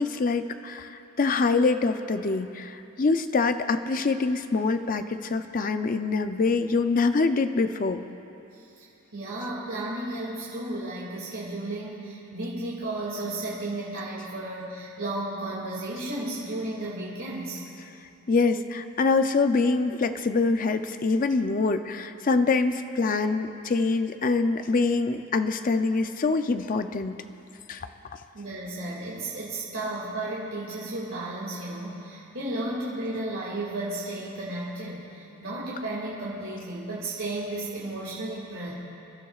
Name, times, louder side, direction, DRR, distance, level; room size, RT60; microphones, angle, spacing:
voice 1, 0.0-8.0 18.3-27.2 27.7-28.2, left 4 dB, 40° left, 9 dB, 0.5 m, -25 dB
voice 2, 8.5-8.9 9.1-17.6 28.3-38.7, right 2 dB, 65° right, -7 dB, 2.3 m, -33 dB
26.5 x 12.5 x 2.4 m, 2.8 s
head